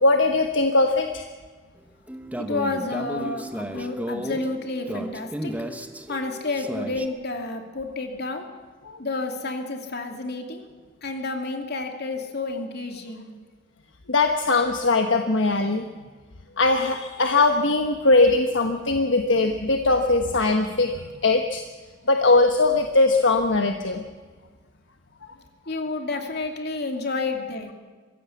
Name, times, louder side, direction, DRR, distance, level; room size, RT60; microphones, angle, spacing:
voice 1, 0.0-1.2 8.8-9.0 14.1-15.9 16.6-20.9 21.2-21.6 22.1-24.0, left 3 dB, 75° left, 5 dB, 1.3 m, -20 dB
sound 1, 2.1-7.1, equal, 10° right, 1.1 m, -33 dB
voice 2, 2.4-5.5 6.1-8.5 9.0-10.7 11.0-13.3 25.7-27.7, left 3 dB, 60° left, 4 dB, 2.7 m, -30 dB
23.5 x 16.0 x 7.2 m, 1.4 s
head